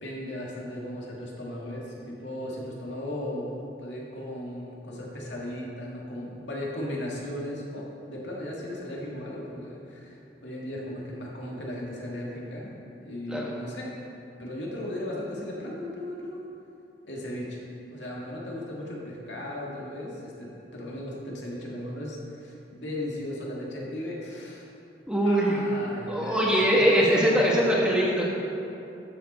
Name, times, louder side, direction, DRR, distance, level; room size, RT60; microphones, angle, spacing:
voice 1, 0.0-12.7 13.0-13.9 14.4-16.4 17.1-17.6 17.9-24.7 25.2-27.6, left 1 dB, 80° left, -4 dB, 2.1 m, -36 dB
voice 2, 25.1-25.6 26.1-28.3, equal, 5° right, -4 dB, 1.3 m, -22 dB
12.5 x 6.8 x 4.4 m, 2.8 s
head